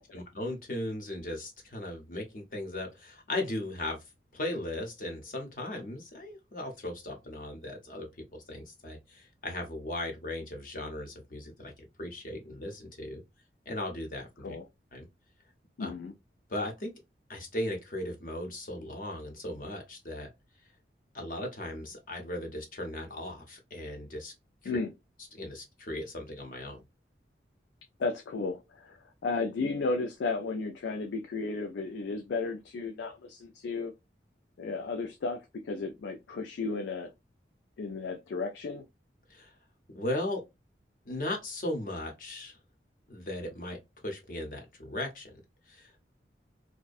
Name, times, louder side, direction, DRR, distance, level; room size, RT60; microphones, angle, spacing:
voice 1, 0.1-4.0 4.3-13.2 13.7-14.5 14.9-15.1 15.8-15.9 16.5-16.9 17.3-20.3 21.1-24.3 24.6-24.7 25.3-26.8 39.3-39.5 39.9-40.4 41.1-42.6 43.1-45.4 45.7-46.1, left 1 dB, 50° left, 0.7 m, -37 dB
voice 2, 15.8-16.1 24.7-24.9 28.0-33.9 34.6-37.1 37.8-38.9, left 3 dB, 80° left, 0.4 m, -34 dB
2.5 x 2.1 x 2.3 m
head